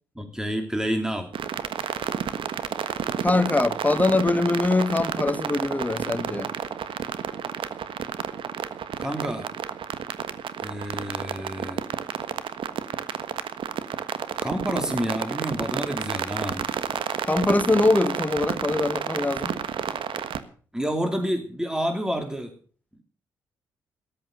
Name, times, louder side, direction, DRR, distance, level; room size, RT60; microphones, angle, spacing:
voice 1, 0.2-1.3 9.0-9.5 10.6-11.9 14.4-16.7 20.7-22.5, equal, 5° right, 3.0 m, -29 dB
sound 1, 1.3-20.4, right 8 dB, 65° right, 1.4 m, -31 dB
voice 2, 3.2-6.5 17.3-19.6, left 2 dB, 15° left, 1.4 m, -23 dB
14.0 x 11.5 x 6.5 m
hypercardioid pair, 45°, 9 cm